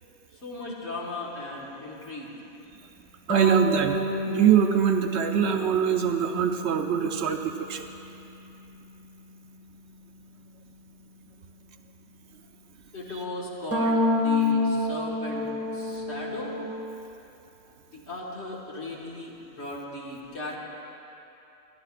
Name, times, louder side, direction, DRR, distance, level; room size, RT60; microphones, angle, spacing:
voice 1, 0.3-2.4 12.9-16.6 17.9-20.6, left 1 dB, 60° left, -4 dB, 1.9 m, -37 dB
sound 1, 3.3-7.8 13.7-16.7, left 1 dB, 10° left, 1.8 m, -28 dB
voice 2, 3.3-4.0 4.3-7.8, right 8 dB, 70° right, 5 dB, 0.8 m, -23 dB
21.0 x 11.5 x 2.4 m, 2.9 s
omnidirectional pair, 1.3 m